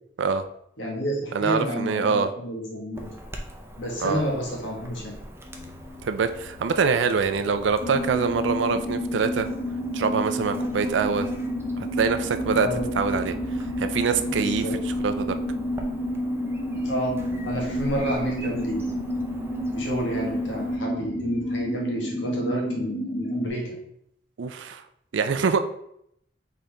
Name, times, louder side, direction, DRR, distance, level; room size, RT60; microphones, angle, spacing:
voice 1, 0.8-3.1 3.8-5.2 12.5-12.8 14.2-14.7 16.7-19.0 19.7-23.7, equal, 90° left, -1 dB, 1.4 m, -30 dB
voice 2, 1.3-2.3 4.0-4.2 6.0-9.5 9.9-11.3 11.8-12.7 13.0-13.3 13.8-14.7 15.0-15.3 24.4-24.8 25.1-25.6, right 5 dB, 90° right, 9 dB, 0.4 m, -24 dB
Chirp tweet / Buzz, 2.9-20.8, equal, 15° right, 0.5 m, -42 dB
sound 1, 5.4-21.6, left 3 dB, 20° left, 1.4 m, -49 dB
sound 2, 7.8-23.5, equal, 65° left, 1.0 m, -29 dB
4.1 x 3.7 x 3.4 m, 0.74 s
head